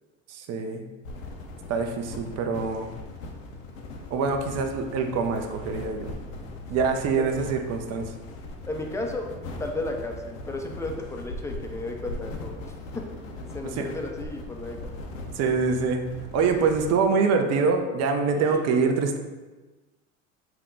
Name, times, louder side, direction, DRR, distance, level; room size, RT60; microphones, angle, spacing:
voice 1, 0.3-0.8 1.7-2.9 4.1-6.1 6.7-8.1 13.8-13.9 15.3-16.0 16.3-19.2, right 5 dB, 40° right, 5 dB, 0.6 m, -25 dB
sound 1, 1.0-16.9, left 2 dB, 75° left, 0.8 m, -39 dB
voice 2, 8.7-15.0 18.4-18.6, left 2 dB, 5° left, 2 dB, 0.5 m, -34 dB
5.8 x 2.2 x 3.8 m, 1.2 s
hypercardioid pair, 80°, 40 cm